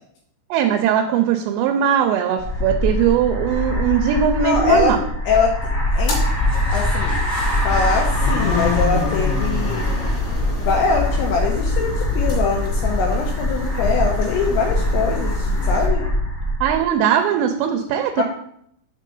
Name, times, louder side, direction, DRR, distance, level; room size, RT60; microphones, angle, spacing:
voice 1, 0.5-5.0 16.6-18.2, right 9 dB, 85° right, 5 dB, 3.0 m, -19 dB
sound 1, 2.4-16.8, left 1 dB, 30° left, 1.2 m, -22 dB
voice 2, 4.4-4.9 5.3-5.6 5.9-6.2 6.7-7.2 7.6-9.9 10.6-16.1 18.2-18.3, left 5 dB, 85° left, 1 dB, 2.7 m, -22 dB
sound 2, 5.9-15.8, left 3 dB, 55° left, 3.7 m, -29 dB
7.5 x 3.3 x 5.4 m, 0.71 s
omnidirectional pair, 5.9 m